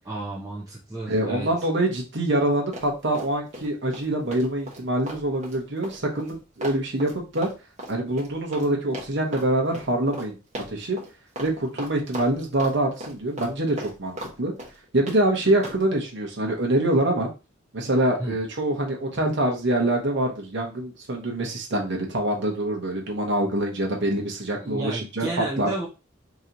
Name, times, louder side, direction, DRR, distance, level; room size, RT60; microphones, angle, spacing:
voice 1, 0.1-1.5 18.2-18.4 24.6-25.9, right 2 dB, 15° right, -5 dB, 0.8 m, -32 dB
voice 2, 1.1-7.5 7.9-10.4 10.7-11.0 11.4-14.5 14.9-17.3 17.7-25.7, right 1 dB, 65° right, 0 dB, 1.1 m, -25 dB
Run, 2.7-3.7 3.9-8.7 8.9-9.5 9.7-9.9 10.1-10.3 10.5-11.1 11.4-11.5 11.8-12.7 13.0-14.3 14.6-15.2 15.6-15.8, equal, 35° right, 1.2 m, -37 dB
3.0 x 2.9 x 3.9 m, 0.30 s
head